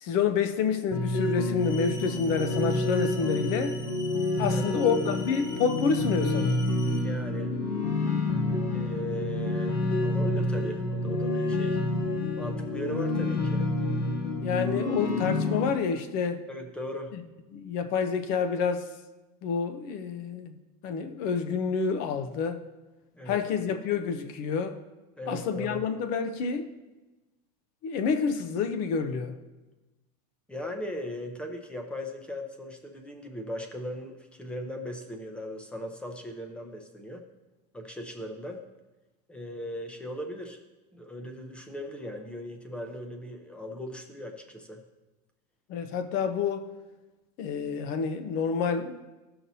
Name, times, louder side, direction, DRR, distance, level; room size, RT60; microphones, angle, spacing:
voice 1, 0.0-3.7 4.4-6.6 14.4-16.4 17.1-17.2 17.5-18.8 19.4-20.5 20.8-22.6 23.3-24.8 25.3-26.7 27.8-29.4 45.7-46.7 47.4-49.0, left 6 dB, 45° left, 8 dB, 0.7 m, -28 dB
sound 1, 0.9-15.7, left 2 dB, 90° left, 1.2 m, -28 dB
sound 2, 1.6-7.0, left 3 dB, 20° left, 1.1 m, -45 dB
voice 2, 7.0-7.5 8.7-11.8 12.4-13.7 16.5-17.1 23.1-23.4 25.2-25.8 30.5-37.2 37.7-38.6 39.3-40.6 40.9-44.8, equal, 5° left, 4 dB, 0.7 m, -38 dB
15.0 x 5.9 x 2.7 m, 1.1 s
supercardioid pair, 160°, 20 cm